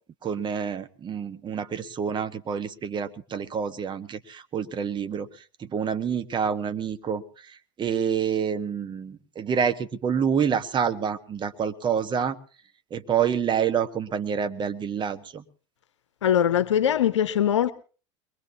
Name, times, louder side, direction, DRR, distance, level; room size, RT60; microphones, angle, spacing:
voice 1, 0.2-12.4 12.9-15.4, right 7 dB, 30° right, 1.4 m, -28 dB
voice 2, 16.2-17.7, left 9 dB, 75° left, 0.8 m, -21 dB
23.0 x 22.0 x 2.8 m
figure-of-eight pair, 75°, 15 cm